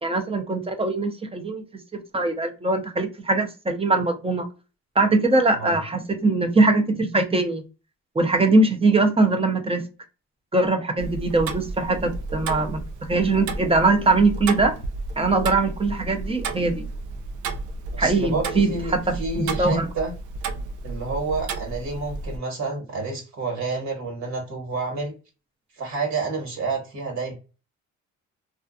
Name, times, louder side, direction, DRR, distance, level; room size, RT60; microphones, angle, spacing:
voice 1, 0.0-1.6 1.9-4.5 5.0-7.6 8.2-9.8 10.5-14.8 15.2-16.9 18.0-19.8, right 2 dB, 20° right, 0.6 m, -22 dB
Tick-tock, 11.0-22.4, right 3 dB, 80° right, 0.5 m, -32 dB
voice 2, 17.9-20.1 20.8-25.1 25.7-27.3, right 3 dB, 65° right, 1.4 m, -29 dB
2.4 x 2.4 x 2.5 m
cardioid pair, 90°, 30 cm